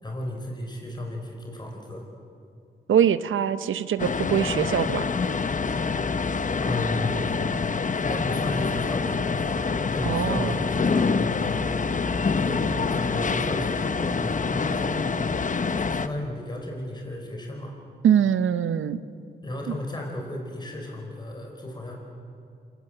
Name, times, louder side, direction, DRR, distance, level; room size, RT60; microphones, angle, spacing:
voice 1, 0.0-2.1 6.6-7.4 8.0-11.7 12.3-15.3 15.7-17.8 19.4-21.9, left 1 dB, 20° left, 1 dB, 4.7 m, -34 dB
voice 2, 2.9-5.1 10.0-10.5 18.0-19.0 19.7-19.8, right 9 dB, 80° right, 13 dB, 0.8 m, -23 dB
sound 1, 4.0-16.1, left 4 dB, 40° left, 1.0 m, -26 dB
27.5 x 17.5 x 7.9 m, 2.4 s
cardioid pair, 60°, 20 cm